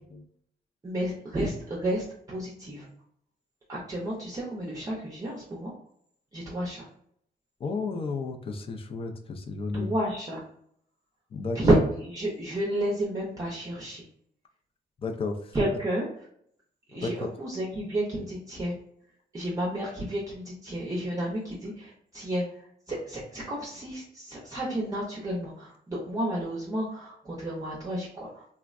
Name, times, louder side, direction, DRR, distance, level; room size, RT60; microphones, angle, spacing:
voice 1, 0.8-2.9 3.7-5.7 6.3-6.9 9.7-10.4 11.5-14.0 15.5-16.1 16.9-18.7 19.3-28.5, right 1 dB, 20° right, -4 dB, 0.5 m, -31 dB
voice 2, 7.6-9.9 11.3-11.8 15.0-15.6 17.0-17.3, left 3 dB, 35° left, 4 dB, 0.4 m, -33 dB
3.4 x 2.1 x 2.4 m, 0.68 s
wide cardioid pair, 175°, 17 cm